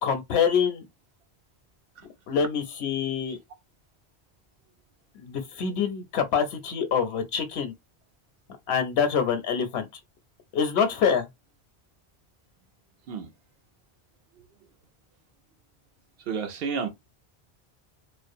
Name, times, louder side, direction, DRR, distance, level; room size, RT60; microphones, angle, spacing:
voice 1, 0.0-0.8 2.3-3.4 5.1-7.7 8.7-9.9 10.5-11.3, left 7 dB, 80° left, 0.8 m, -25 dB
voice 2, 16.3-16.9, right 6 dB, 65° right, 0.8 m, -30 dB
2.4 x 2.0 x 2.5 m
omnidirectional pair, 1.1 m